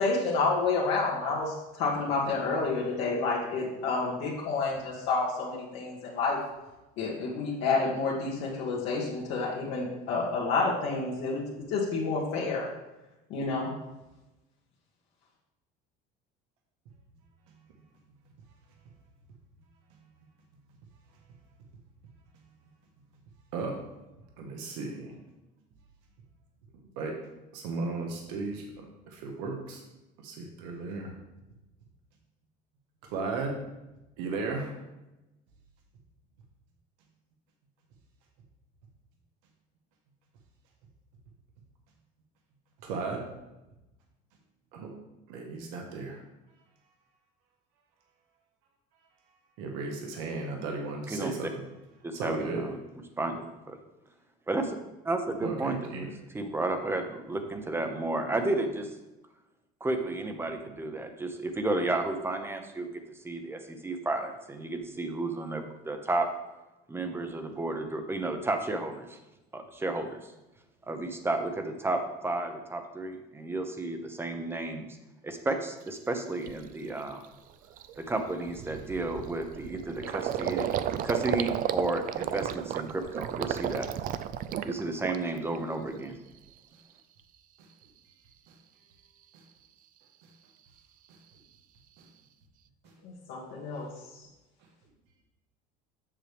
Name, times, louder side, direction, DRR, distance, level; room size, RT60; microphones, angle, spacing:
voice 1, 0.0-6.4 7.0-11.4 11.7-12.7 13.3-13.7 93.0-93.9, left 4 dB, 70° left, -5 dB, 1.6 m, -29 dB
voice 2, 24.4-25.1 26.9-27.1 27.5-28.6 29.1-29.8 30.2-31.1 33.0-33.6 34.2-34.7 42.8-43.2 44.7-44.9 45.3-46.2 49.6-51.5 52.1-52.6 55.4-56.1, right 4 dB, 85° right, 1 dB, 1.3 m, -35 dB
voice 3, 52.0-52.7 53.2-53.8 54.5-54.8 55.0-56.1 56.3-58.9 59.8-62.9 63.2-66.3 66.9-69.2 69.5-70.2 70.9-74.9 75.2-77.2 78.0-83.9 84.6-86.1, right 2 dB, 10° right, 6 dB, 0.8 m, -32 dB
Gurgling, 75.9-76.0 76.5-76.7 77.1-77.3 77.5-85.6 85.9-86.5, right 10 dB, 45° right, 0.4 m, -33 dB
7.5 x 6.5 x 3.4 m, 1.0 s
cardioid pair, 135°, 21 cm